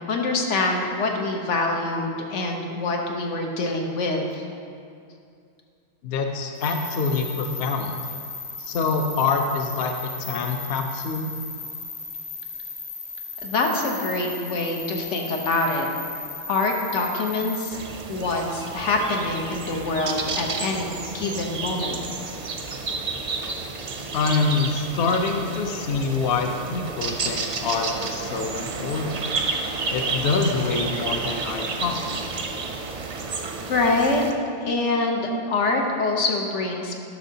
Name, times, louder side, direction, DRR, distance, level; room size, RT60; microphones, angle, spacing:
voice 1, 0.1-4.4 13.4-15.9 16.5-17.8 18.1-22.0 33.7-34.2 34.6-37.0, left 2 dB, 85° left, 1 dB, 1.2 m, -25 dB
voice 2, 6.0-8.0 8.6-11.3 24.1-29.2 29.9-32.0, left 4 dB, 65° left, 4 dB, 0.8 m, -25 dB
sound 1, 6.6-17.7, left 3 dB, 20° left, 0.6 m, -36 dB
sound 2, 17.7-34.3, right 3 dB, 50° right, 0.5 m, -31 dB
11.0 x 6.0 x 2.8 m, 2.4 s
omnidirectional pair, 1.2 m